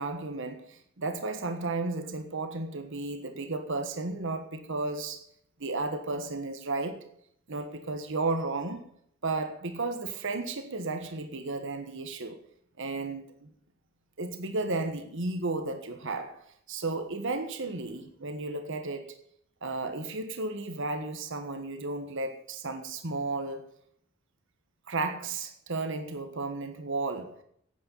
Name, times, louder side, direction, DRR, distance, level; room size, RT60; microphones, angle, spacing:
voice 1, 0.0-5.2 5.6-7.0 7.5-8.9 9.2-12.4 12.8-13.5 14.2-19.2 19.6-23.6 24.9-27.4, right 3 dB, 60° right, 1.4 m, -33 dB
9.5 x 8.9 x 9.0 m
head